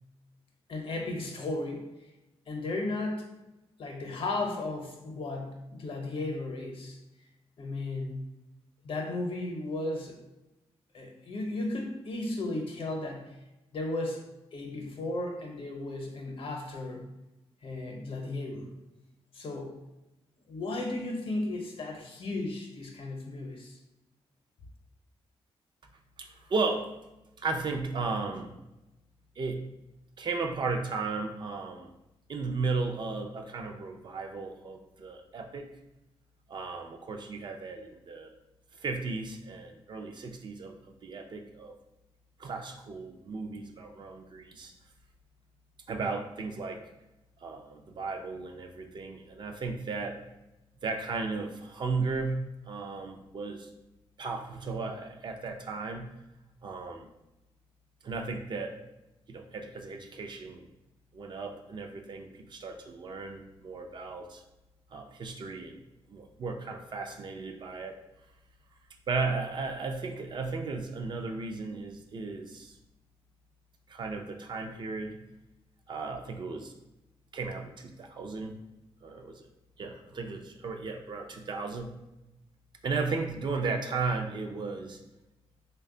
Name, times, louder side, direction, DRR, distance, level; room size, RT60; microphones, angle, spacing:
voice 1, 0.7-1.9 2.5-3.3 3.8-7.0 7.6-8.3 8.8-10.2 10.9-13.4 13.7-14.2 14.5-17.1 17.6-18.7 19.3-19.8 20.5-23.8, left 2 dB, 60° left, 2 dB, 0.7 m, -35 dB
voice 2, 26.2-26.9 27.4-28.5 29.4-29.6 30.2-31.9 32.3-35.7 36.5-38.3 38.7-41.7 42.4-44.7 45.9-46.9 47.4-50.2 50.8-52.4 52.7-53.7 54.2-56.1 56.6-57.1 58.0-58.8 59.3-60.7 61.1-64.4 64.9-65.8 66.1-68.0 69.1-72.8 73.9-75.2 75.9-76.7 77.3-78.5 79.0-79.5 79.8-81.9 82.8-85.0, right 4 dB, 45° right, 4 dB, 0.4 m, -35 dB
3.2 x 2.2 x 3.7 m, 0.95 s
wide cardioid pair, 120°, 11 cm